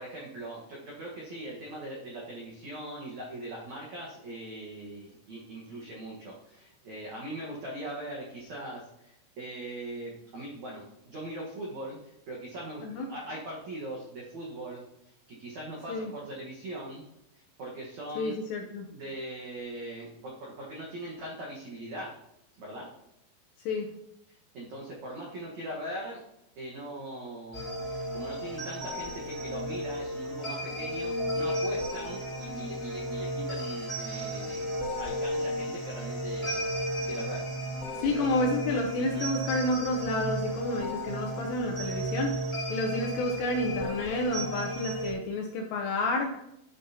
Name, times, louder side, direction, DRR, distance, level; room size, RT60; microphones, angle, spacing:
voice 1, 0.0-14.8 15.3-17.0 17.3-18.4 18.9-22.1 22.6-22.9 24.3-26.2 26.5-37.4 38.0-38.3 39.0-39.2, right 1 dB, 90° right, -3 dB, 1.6 m, -41 dB
voice 2, 18.2-18.9 23.7-23.9 38.0-42.4 42.7-46.3, left 2 dB, 80° left, 2 dB, 2.5 m, -30 dB
sound 1, 27.5-45.1, equal, 10° left, 2.6 m, -34 dB
12.5 x 7.3 x 2.9 m, 0.83 s
omnidirectional pair, 5.9 m